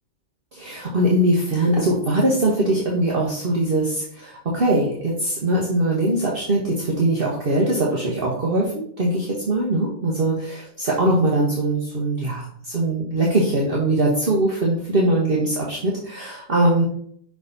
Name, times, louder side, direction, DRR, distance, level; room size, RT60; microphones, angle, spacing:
voice 1, 0.5-16.8, right 1 dB, 45° right, -4 dB, 1.4 m, -21 dB
5.9 x 5.9 x 4.0 m, 0.64 s
omnidirectional pair, 1.3 m